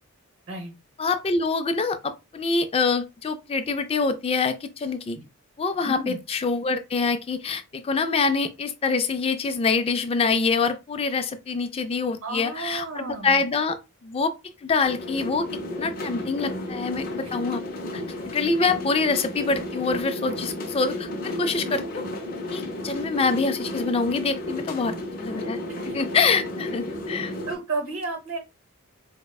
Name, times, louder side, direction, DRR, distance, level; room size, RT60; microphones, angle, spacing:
voice 1, 1.0-5.2 5.6-13.8 14.0-14.3 14.6-15.5 15.8-17.6 18.3-22.0 22.5-25.6 25.9-27.3, left 4 dB, 25° left, 0.3 m, -25 dB
voice 2, 5.8-6.2 12.2-13.4 17.2-17.3 25.7-25.8 27.5-28.4, right 3 dB, 60° right, 0.8 m, -32 dB
sound 1, 14.8-27.6, left 1 dB, 40° left, 0.7 m, -33 dB
4.3 x 2.0 x 2.3 m
head